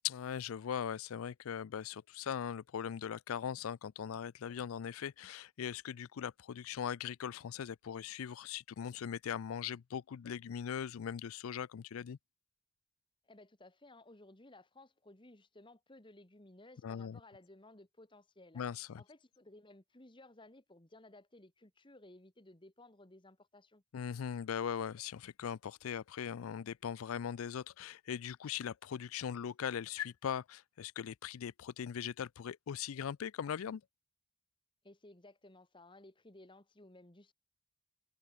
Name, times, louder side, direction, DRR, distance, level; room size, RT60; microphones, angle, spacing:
voice 1, 0.0-12.2 16.8-17.2 18.5-19.0 23.9-33.8, left 8 dB, 80° left, 0.4 m, -40 dB
voice 2, 13.2-18.7 19.0-23.8 34.8-37.3, left 2 dB, 25° left, 1.7 m, -58 dB
head